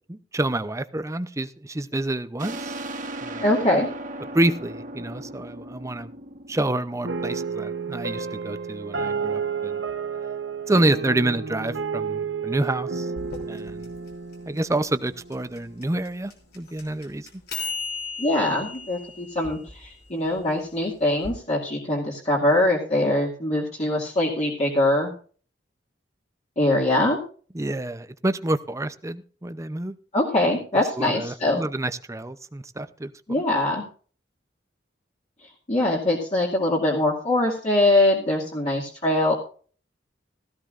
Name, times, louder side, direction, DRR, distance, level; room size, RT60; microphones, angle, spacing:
voice 1, 0.1-2.8 3.2-3.5 4.3-6.1 6.5-9.8 10.7-13.1 13.5-13.9 14.5-17.3 27.5-29.9 30.7-33.1, right 1 dB, 15° right, 0.6 m, -28 dB
sound 1, 2.4-7.7, right 1 dB, 45° right, 1.0 m, -37 dB
voice 2, 3.4-3.9 18.2-25.1 26.6-27.2 30.1-31.7 33.3-33.8 35.7-39.3, left 1 dB, 40° left, 2.2 m, -23 dB
sound 2, 7.0-15.6, right 5 dB, 75° right, 0.9 m, -31 dB
sound 3, 13.2-21.3, left 3 dB, 60° left, 3.3 m, -37 dB
16.5 x 14.5 x 2.5 m
head